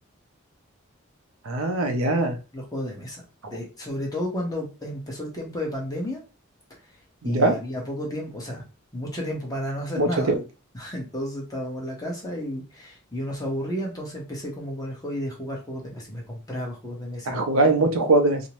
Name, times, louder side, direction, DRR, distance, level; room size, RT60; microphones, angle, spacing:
voice 1, 1.5-2.4 7.2-7.5 10.0-10.3 17.3-18.4, right 2 dB, 80° right, 5 dB, 0.5 m, -21 dB
voice 2, 2.5-6.2 7.2-8.6 8.9-10.4 10.7-17.4, equal, 20° left, -2 dB, 0.9 m, -32 dB
2.6 x 2.1 x 2.9 m, 0.31 s
head